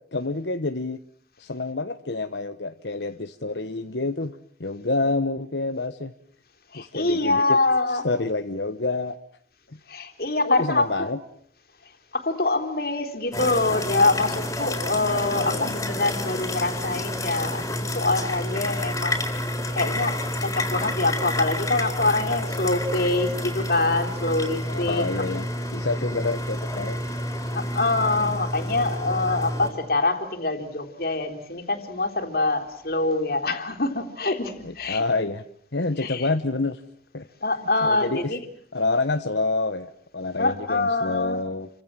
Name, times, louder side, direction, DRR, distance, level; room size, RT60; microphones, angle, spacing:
voice 1, 0.1-1.0 1.4-6.1 6.7-7.6 7.9-9.2 9.7-9.8 10.4-11.2 15.3-15.7 24.7-27.0 34.6-35.4 35.7-36.8 37.1-37.3 37.8-38.3 38.7-41.7, left 3 dB, 75° left, 9 dB, 1.2 m, -28 dB
voice 2, 6.7-8.1 9.9-11.1 12.1-19.2 19.8-25.2 27.5-35.0 36.0-36.3 37.4-38.4 40.4-41.4, left 2 dB, 55° left, 5 dB, 3.6 m, -25 dB
sound 1, 13.3-29.7, left 1 dB, 15° left, 4.2 m, -29 dB
29.5 x 25.0 x 7.6 m, 0.65 s
head